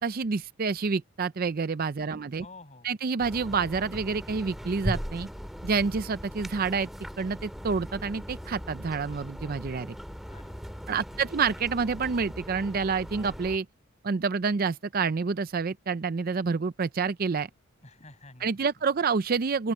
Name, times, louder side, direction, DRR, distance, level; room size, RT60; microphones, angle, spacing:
voice 1, 0.0-2.4 2.8-5.3 5.6-6.9 7.2-10.0 10.9-13.7 14.0-17.5 18.4-19.7, right 5 dB, 45° right, 0.4 m, -28 dB
voice 2, 2.0-2.9 10.3-11.2 17.8-18.9, left 2 dB, 30° left, 7.6 m, -52 dB
sound 1, 3.2-13.6, equal, ahead, 2.0 m, -39 dB
open air
head